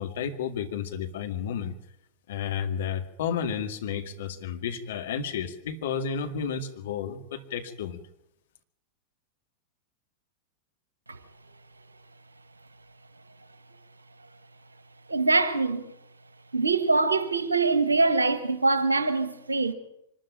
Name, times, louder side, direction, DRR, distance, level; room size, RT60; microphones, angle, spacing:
voice 1, 0.0-1.7 2.3-8.0, left 7 dB, 60° left, 2.1 m, -32 dB
voice 2, 15.1-15.8 16.5-19.7, right 3 dB, 80° right, 1.5 m, -23 dB
25.0 x 13.0 x 8.9 m
figure-of-eight pair, 90°, 0 cm